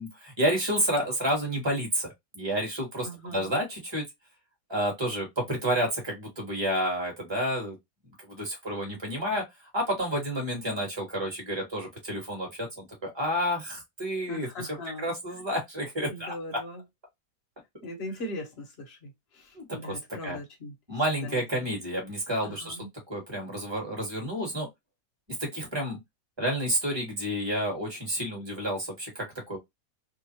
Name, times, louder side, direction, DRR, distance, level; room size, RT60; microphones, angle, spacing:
voice 1, 0.0-4.0 4.7-7.8 8.2-9.4 9.7-14.5 15.0-16.3 19.5-20.0 20.2-20.4 20.9-22.8 23.1-24.7 25.4-26.0 26.4-29.6, equal, 20° right, 1.4 m, -30 dB
voice 2, 3.0-3.6 14.3-15.1 16.1-16.8 17.8-20.7 21.2-21.7 22.4-22.9, left 1 dB, 45° left, 1.2 m, -40 dB
3.0 x 2.3 x 2.8 m
omnidirectional pair, 1.7 m